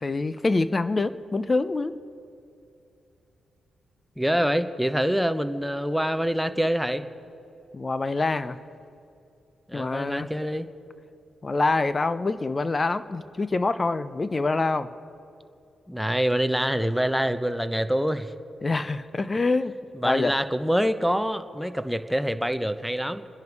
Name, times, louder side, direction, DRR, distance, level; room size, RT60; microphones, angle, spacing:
voice 1, 0.0-1.9 7.7-8.6 9.7-10.3 11.4-14.9 18.6-19.8 20.0-20.3, left 3 dB, 35° left, 13 dB, 0.7 m, -25 dB
voice 2, 4.2-7.0 9.7-10.7 15.9-18.3 19.9-23.3, equal, ahead, 11 dB, 1.0 m, -25 dB
28.5 x 10.5 x 4.8 m, 2.7 s
cardioid pair, 60°, 0 cm